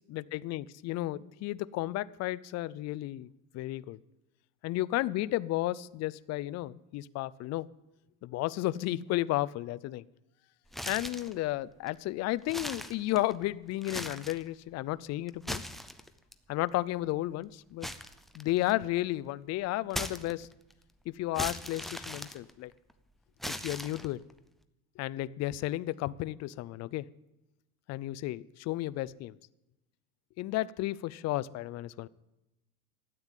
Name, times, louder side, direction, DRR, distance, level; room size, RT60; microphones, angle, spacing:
voice 1, 0.1-4.0 4.6-7.7 8.2-10.0 10.9-15.6 16.5-17.9 18.3-20.5 21.1-22.7 23.4-24.2 25.0-27.1 27.9-29.4 30.4-32.1, left 16 dB, 40° left, 0.5 m, -33 dB
sound 1, 10.7-11.4 11.9-12.0 12.4-13.4 13.8-14.5 15.3-16.3 17.8-18.9 19.9-20.7 21.4-22.9 23.4-24.3, equal, ahead, 0.6 m, -39 dB
13.0 x 9.2 x 9.1 m
cardioid pair, 140°, 39 cm